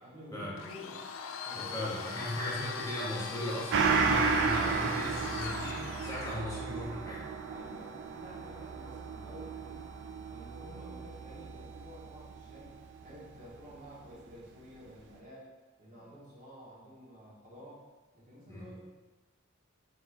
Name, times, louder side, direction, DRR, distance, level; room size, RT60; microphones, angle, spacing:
voice 1, 0.0-1.0 1.4-2.5 7.5-9.9 10.3-12.7 13.0-15.5 15.8-17.8 18.1-18.8, equal, 40° right, -7 dB, 1.2 m, -50 dB
Domestic sounds home sounds, 0.6-6.5, left 6 dB, 65° left, 0.3 m, -41 dB
sound 1, 1.0-15.0, right 11 dB, 85° right, 1.4 m, -55 dB
voice 2, 1.5-7.3 18.5-18.7, left 1 dB, 15° left, -6 dB, 0.6 m, -37 dB
Gong, 3.7-12.7 13.0-13.1, right 5 dB, 55° right, 0.3 m, -33 dB
4.4 x 4.0 x 2.5 m, 1.2 s
head